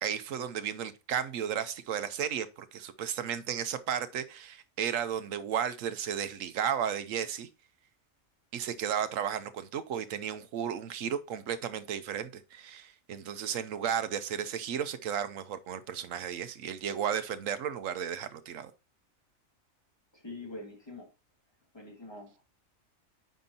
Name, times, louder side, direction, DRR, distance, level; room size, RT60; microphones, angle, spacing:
voice 1, 0.0-7.5 8.5-18.7, right 8 dB, 75° right, 1.1 m, -34 dB
voice 2, 20.1-21.1 21.7-22.4, left 2 dB, 20° left, 2.1 m, -44 dB
9.2 x 5.3 x 2.7 m
omnidirectional pair, 1.4 m